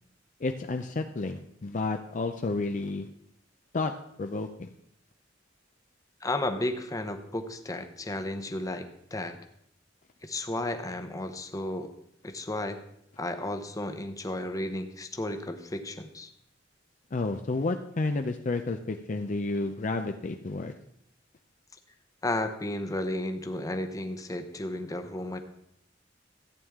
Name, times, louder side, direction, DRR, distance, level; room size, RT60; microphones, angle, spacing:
voice 1, 0.4-3.1 3.7-3.9 4.2-4.7 17.1-20.8, left 3 dB, 45° left, 6 dB, 0.5 m, -31 dB
voice 2, 6.2-9.4 10.2-11.9 12.2-12.8 13.2-16.3 22.2-25.4, left 1 dB, 20° left, 7 dB, 0.9 m, -33 dB
14.0 x 8.9 x 3.6 m, 0.74 s
head